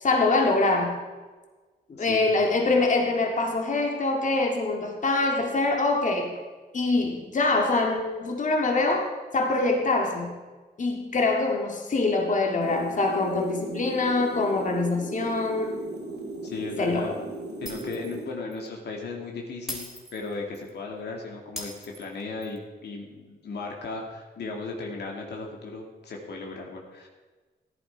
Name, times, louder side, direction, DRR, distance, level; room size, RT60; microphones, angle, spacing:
voice 1, 0.0-1.0 1.9-6.3 6.7-9.1 9.3-10.3 10.8-15.7 16.8-17.1, left 3 dB, 45° left, 1 dB, 2.1 m, -24 dB
sound 1, 12.6-18.2, right 2 dB, 80° right, 2.9 m, -37 dB
voice 2, 16.4-17.1 17.6-27.1, left 3 dB, 80° left, 0 dB, 2.2 m, -36 dB
Shatter, 17.7-18.2 18.5-18.7 19.7-20.7 21.6-22.6, left 1 dB, ahead, 3.3 m, -39 dB
14.0 x 11.0 x 4.5 m, 1.3 s
cardioid pair, 85°, 17 cm